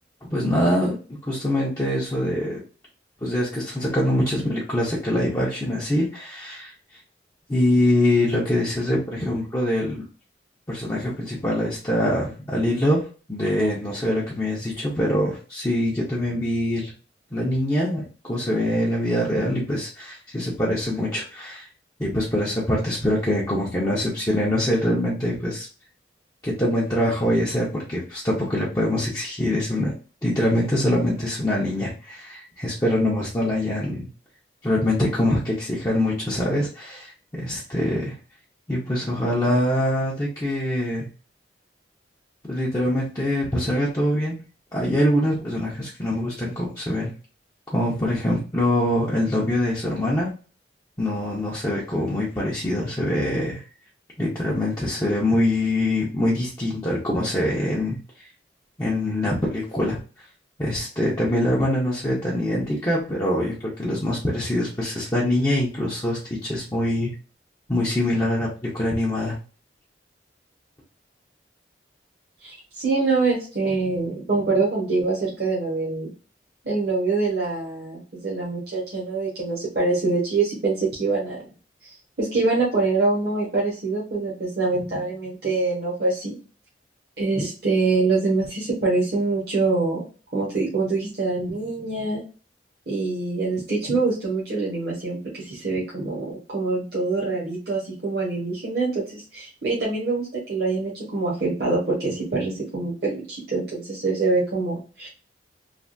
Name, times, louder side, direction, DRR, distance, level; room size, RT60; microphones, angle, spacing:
voice 1, 0.3-0.9 1.2-2.6 3.2-6.7 7.5-10.0 10.7-16.9 17.3-18.0 18.3-21.7 22.0-25.7 26.4-29.9 30.2-34.1 34.6-38.1 38.7-41.1 42.5-44.4 44.7-47.1 47.7-50.3 51.0-53.6 54.2-58.0 58.8-60.0 60.6-67.1 67.7-69.4, left 1 dB, 20° left, -6 dB, 0.7 m, -24 dB
voice 2, 72.4-76.1 76.6-81.4 81.8-86.4 87.2-90.0 90.3-92.2 92.9-105.1, right 3 dB, 55° right, -6 dB, 1.1 m, -25 dB
3.3 x 2.4 x 2.5 m, 0.36 s
head